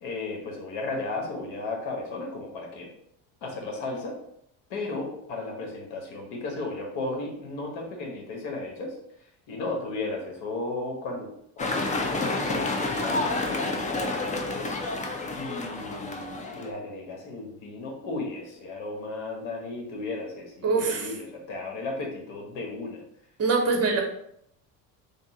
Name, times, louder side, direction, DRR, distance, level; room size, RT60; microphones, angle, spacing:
voice 1, 0.0-2.9 3.4-4.2 4.7-9.0 9.5-14.7 15.3-23.0, left 2 dB, 75° left, 1 dB, 1.4 m, -35 dB
sound 1, 11.6-16.7, left 2 dB, 20° left, 0.4 m, -29 dB
voice 2, 20.6-21.1 23.4-24.0, right 4 dB, 35° right, 2 dB, 1.0 m, -23 dB
3.6 x 2.4 x 4.0 m, 0.72 s
supercardioid pair, 110°, 44 cm